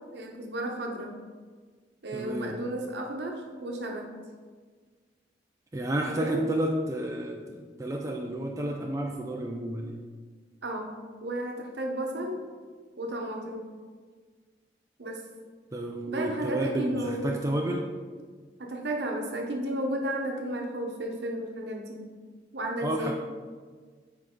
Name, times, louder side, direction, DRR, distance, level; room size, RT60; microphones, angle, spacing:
voice 1, 0.1-1.1 2.0-4.1 6.1-6.5 10.6-12.4 13.0-13.7 15.0-15.2 16.1-17.4 18.6-22.1 22.5-23.1, right 1 dB, 65° right, 1 dB, 0.9 m, -33 dB
voice 2, 2.1-2.5 5.7-10.0 15.7-17.9 22.8-23.1, right 1 dB, 15° right, 0 dB, 0.4 m, -31 dB
7.0 x 4.6 x 3.8 m, 1.6 s
head